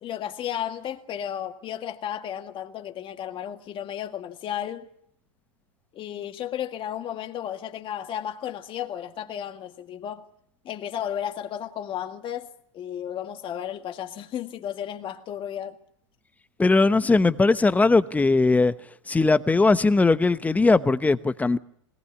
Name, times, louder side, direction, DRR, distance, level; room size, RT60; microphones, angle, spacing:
voice 1, 0.0-4.9 5.9-10.3 10.6-15.8, left 10 dB, 30° left, 1.9 m, -33 dB
voice 2, 16.6-18.7 19.1-21.6, left 3 dB, 10° left, 0.9 m, -19 dB
21.0 x 19.5 x 8.4 m
hypercardioid pair, 115°, 16 cm